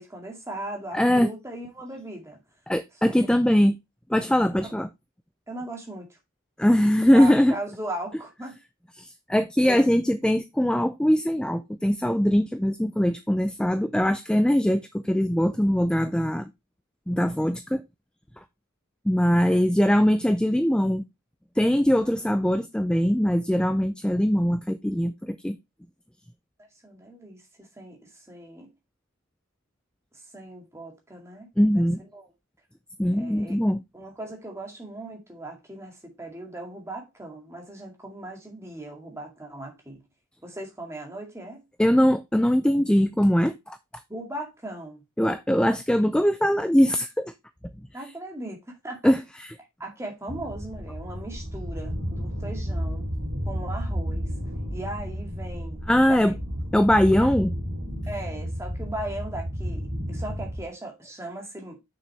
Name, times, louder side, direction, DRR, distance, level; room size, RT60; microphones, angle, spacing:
voice 1, 0.0-2.4 4.6-4.7 5.5-6.2 7.1-8.6 9.6-9.8 26.6-28.7 30.1-31.5 31.7-31.9 32.1-32.3 33.1-33.6 33.9-40.0 40.4-41.6 44.1-45.0 47.9-49.1 49.8-53.1 53.5-54.3 54.7-56.4 57.2-57.4 58.1-61.8, right 1 dB, 15° right, 2.1 m, -38 dB
voice 2, 0.9-1.3 2.7-3.8 4.1-4.9 6.6-7.5 9.0-16.5 17.1-17.8 19.1-21.0 21.6-25.6 31.6-32.0 33.0-33.8 41.8-43.8 45.2-47.3 49.0-49.5 55.9-56.3 56.7-57.5, equal, 5° left, 0.3 m, -21 dB
sound 1, 50.3-60.7, equal, 60° right, 3.1 m, -32 dB
6.8 x 6.1 x 3.3 m
head